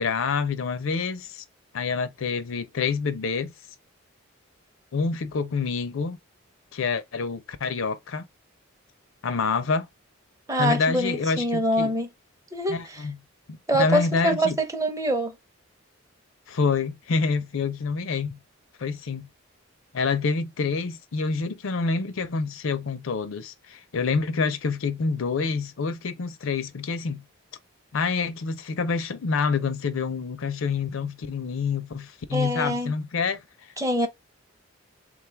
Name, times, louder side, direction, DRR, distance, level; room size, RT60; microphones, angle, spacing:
voice 1, 0.0-1.4 1.7-3.5 4.9-6.2 6.7-8.3 9.2-9.9 10.6-11.9 12.7-13.2 13.7-14.6 16.5-18.4 18.8-19.3 19.9-27.2 27.9-33.4, left 4 dB, 70° left, 0.5 m, -27 dB
voice 2, 10.5-12.1 12.5-13.1 13.7-15.3 32.3-32.9 33.8-34.1, equal, 15° right, 0.6 m, -25 dB
3.5 x 2.3 x 4.4 m
head